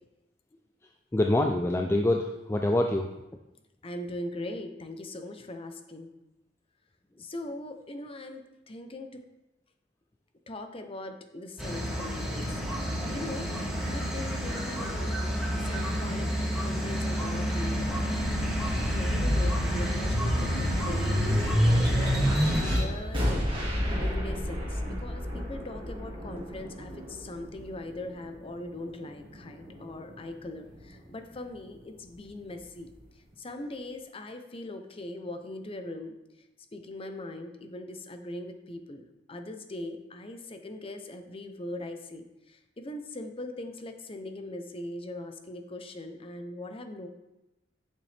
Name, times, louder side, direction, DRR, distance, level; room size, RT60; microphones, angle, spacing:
voice 1, 1.1-3.1, left 1 dB, 15° left, 3 dB, 0.4 m, -25 dB
voice 2, 3.8-6.1 7.2-9.2 10.5-12.6 13.0-15.2 15.6-16.3 16.6-18.0 18.9-23.5 23.8-32.9 33.4-36.2 36.7-47.1, left 1 dB, 30° left, 6 dB, 0.8 m, -40 dB
sound 1, 11.6-22.8, equal, ahead, 1.8 m, -31 dB
sound 2, 17.8-28.3 28.9-30.0, equal, 30° right, 1.9 m, -29 dB
8.5 x 6.8 x 3.4 m, 0.97 s
head